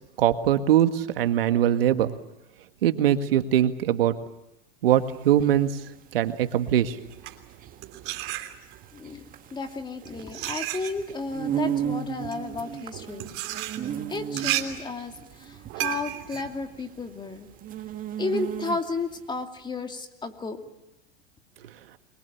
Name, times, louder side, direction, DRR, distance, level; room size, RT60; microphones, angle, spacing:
voice 1, 0.2-2.1 2.8-4.2 4.8-5.7 6.1-7.0, right 11 dB, 80° right, 8 dB, 1.9 m, -22 dB
sound 1, 4.9-19.1, right 9 dB, 30° right, 2.1 m, -35 dB
sound 2, 7.0-9.0 9.7-17.6, right 16 dB, 45° right, 3.2 m, -34 dB
voice 2, 8.9-9.2 9.5-13.3 14.1-15.1 15.4-17.5 18.2-20.6, left 3 dB, 15° left, 5 dB, 2.5 m, -33 dB
29.0 x 23.0 x 7.1 m, 0.93 s
hypercardioid pair, 120°, 29 cm